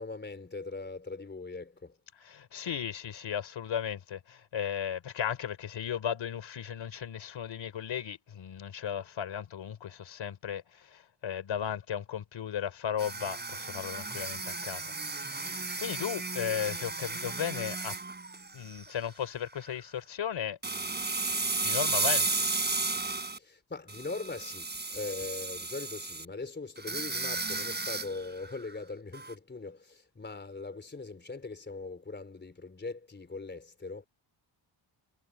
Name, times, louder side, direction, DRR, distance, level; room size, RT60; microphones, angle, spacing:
voice 1, 0.0-2.0 23.3-34.1, left 3 dB, 20° left, 3.9 m, -41 dB
voice 2, 2.2-17.9 18.5-20.6 21.3-22.6, left 8 dB, 75° left, 4.2 m, -36 dB
sound 1, 13.0-19.1 19.5-19.7 20.6-23.4 23.9-26.2 26.8-28.7 29.1-29.3, right 3 dB, 20° right, 5.8 m, -34 dB
wide cardioid pair, 150°, 46 cm